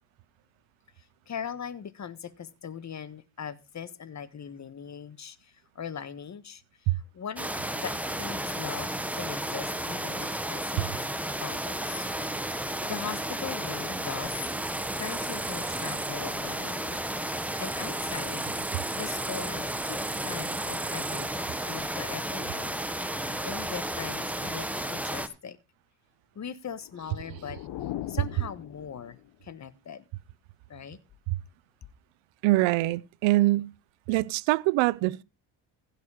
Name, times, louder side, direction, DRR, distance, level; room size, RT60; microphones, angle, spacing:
voice 1, 1.0-10.9 11.4-12.1 12.8-14.4 14.9-17.0 17.6-18.5 18.9-22.8 23.1-23.2 23.4-25.6 26.3-27.6 28.1-30.0 30.7-31.0, left 7 dB, 40° left, 1.4 m, -40 dB
sound 1, 7.4-25.3, right 1 dB, 5° right, 1.3 m, -33 dB
sound 2, 14.1-21.9, right 7 dB, 40° right, 1.6 m, -43 dB
sound 3, 26.7-29.4, left 13 dB, 65° left, 0.9 m, -40 dB
voice 2, 32.4-33.7 34.1-35.2, right 19 dB, 90° right, 0.7 m, -24 dB
16.0 x 6.4 x 4.9 m
cardioid pair, 90°, 45 cm